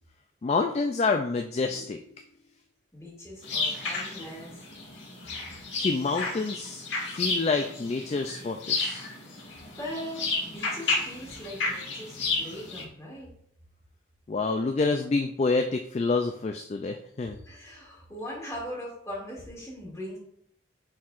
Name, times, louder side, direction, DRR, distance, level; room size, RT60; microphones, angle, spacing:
voice 1, 0.4-2.0 5.8-9.1 14.3-17.4, left 3 dB, 35° left, 5 dB, 0.3 m, -28 dB
voice 2, 2.9-4.6 9.8-13.3 17.5-20.2, equal, 15° left, -4 dB, 2.1 m, -40 dB
sound 1, 3.4-12.8, left 3 dB, 70° left, 1.8 m, -32 dB
9.3 x 4.6 x 2.5 m, 0.68 s
head